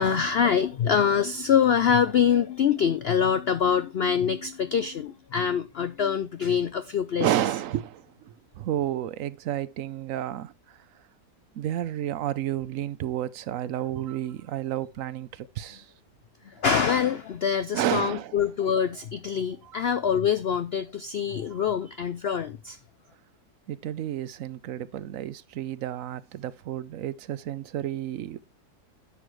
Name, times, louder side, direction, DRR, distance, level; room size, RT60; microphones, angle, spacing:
voice 1, 0.0-7.3 16.4-22.8, left 7 dB, 70° left, 0.6 m, -25 dB
voice 2, 7.2-10.5 11.6-15.9 17.7-18.4 19.7-19.8 21.5-21.7 23.7-28.4, right 12 dB, 65° right, 0.9 m, -31 dB
10.0 x 7.0 x 3.1 m
omnidirectional pair, 1.7 m